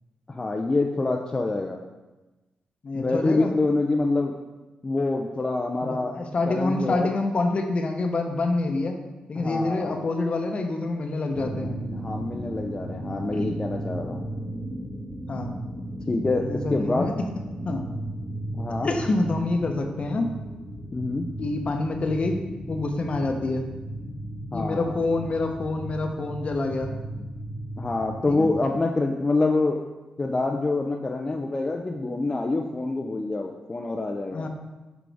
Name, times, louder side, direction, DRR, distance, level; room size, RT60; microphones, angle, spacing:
voice 1, 0.3-1.8 3.0-4.3 4.8-6.1 6.5-7.1 9.4-10.0 11.9-14.2 16.1-17.1 18.5-18.9 20.9-21.3 24.5-25.0 27.8-29.8 30.2-34.5, left 3 dB, 25° left, 2 dB, 0.4 m, -26 dB
voice 2, 2.8-3.5 5.8-9.0 9.3-11.8 13.3-13.5 15.3-15.6 16.4-17.1 17.7-17.9 18.8-20.3 21.4-22.4 22.7-23.7 24.5-26.9 28.3-28.5 34.3-34.5, left 2 dB, 45° left, 4 dB, 0.8 m, -27 dB
sound 1, 11.3-28.5, right 1 dB, 5° left, 1.3 m, -35 dB
6.1 x 4.8 x 3.4 m, 1.1 s
cardioid pair, 75°, 3 cm